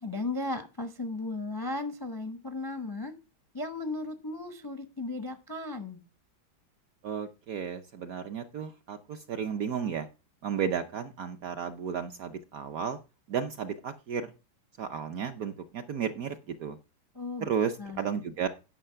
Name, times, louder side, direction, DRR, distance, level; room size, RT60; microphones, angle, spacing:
voice 1, 0.0-3.1 3.5-6.0 17.1-17.5 17.8-18.0, left 2 dB, 35° left, 0.3 m, -35 dB
voice 2, 7.0-10.1 10.4-13.0 13.3-14.3 14.8-16.8 17.4-18.5, right 7 dB, 70° right, 0.9 m, -33 dB
10.0 x 5.7 x 5.6 m
omnidirectional pair, 2.1 m